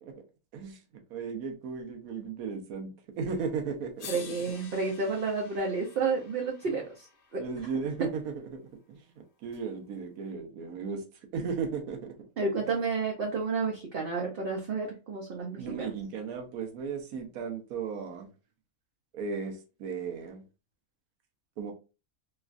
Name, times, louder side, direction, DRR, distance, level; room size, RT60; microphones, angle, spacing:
voice 1, 1.1-4.2 7.4-8.2 8.5-8.6 8.9-9.0 9.4-11.0 11.3-12.1 15.6-18.3 19.1-20.4 21.6-21.7, right 5 dB, 85° right, 1.1 m, -35 dB
sound 1, 3.4-3.5 4.0-8.2 9.5-9.6, left 5 dB, 65° left, 1.0 m, -49 dB
voice 2, 4.1-7.4 12.4-15.9, right 4 dB, 60° right, 0.6 m, -31 dB
3.2 x 2.3 x 2.4 m
omnidirectional pair, 1.5 m